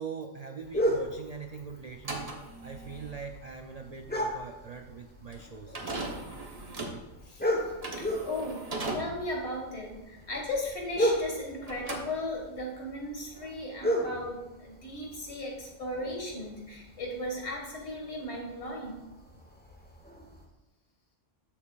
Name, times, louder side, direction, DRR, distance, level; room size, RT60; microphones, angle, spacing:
voice 1, 0.0-2.3 2.6-5.8 7.2-7.8 18.8-18.9, right 5 dB, 55° right, 5 dB, 0.4 m, -42 dB
sound 1, 0.6-20.4, equal, 10° left, 0.9 m, -36 dB
sound 2, 1.9-11.4 11.6-12.7, right 2 dB, 30° right, 1.1 m, -39 dB
voice 2, 7.9-8.6 8.9-19.0, left 1 dB, 65° left, -1 dB, 2.1 m, -36 dB
12.5 x 7.0 x 2.4 m, 1.0 s
omnidirectional pair, 1.2 m